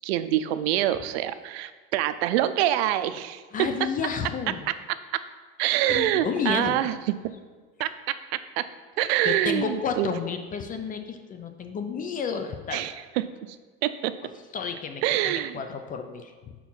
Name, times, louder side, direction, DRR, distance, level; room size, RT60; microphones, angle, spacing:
voice 1, 0.0-3.7 5.6-7.2 7.8-8.6 9.0-10.1 12.7-13.2 13.8-14.1 15.0-15.6, right 13 dB, 85° right, 12 dB, 0.5 m, -26 dB
voice 2, 3.5-4.7 5.9-6.8 9.2-12.8 14.3-16.6, left 6 dB, 30° left, 7 dB, 0.5 m, -31 dB
5.8 x 4.6 x 5.5 m, 1.4 s
supercardioid pair, 130°, 30 cm